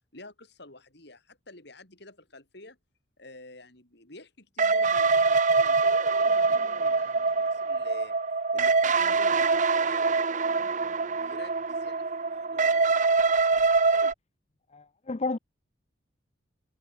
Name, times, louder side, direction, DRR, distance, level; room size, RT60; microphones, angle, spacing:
voice 1, 0.1-2.8 3.2-8.2 8.5-12.9, left 2 dB, 60° left, 6.0 m, -49 dB
sound 1, 4.6-14.1, right 4 dB, 40° right, 1.0 m, -24 dB
voice 2, 14.7-15.4, left 3 dB, 35° left, 0.6 m, -31 dB
head